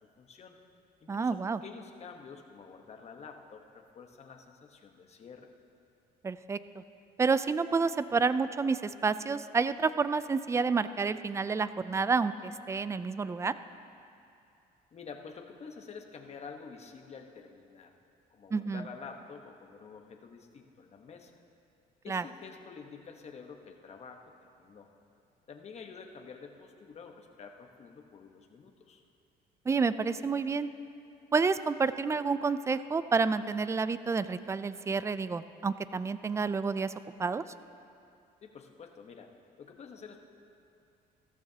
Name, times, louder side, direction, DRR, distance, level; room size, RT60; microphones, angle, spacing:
voice 1, 0.2-0.6 1.0-5.5 14.9-17.9 18.3-21.4 22.0-24.9 25.5-29.0 38.4-40.2, left 5 dB, 40° left, 3 dB, 1.1 m, -49 dB
voice 2, 1.1-1.6 6.2-6.8 7.2-13.5 18.5-18.8 22.1-22.2 29.7-30.7 31.3-36.9 37.2-37.4, right 4 dB, 15° right, 14 dB, 0.3 m, -29 dB
15.5 x 14.0 x 2.8 m, 2.6 s
cardioid pair, 110°, 17 cm